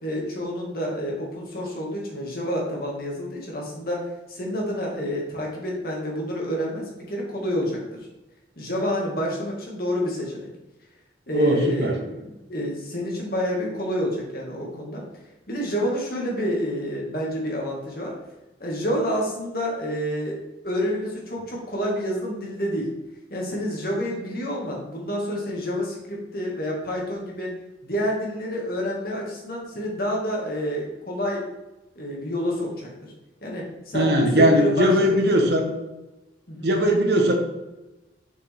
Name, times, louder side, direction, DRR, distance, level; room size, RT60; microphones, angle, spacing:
voice 1, 0.0-8.1 8.6-10.5 11.3-15.0 15.5-18.1 18.6-20.4 20.6-22.9 23.3-27.5 27.8-31.4 32.0-33.1 33.4-35.1 36.5-36.7, equal, 55° left, -2 dB, 2.1 m, -28 dB
voice 2, 11.3-12.0 33.9-35.7 36.6-37.3, equal, 65° right, 3 dB, 1.2 m, -19 dB
6.4 x 6.3 x 3.6 m, 1.0 s
head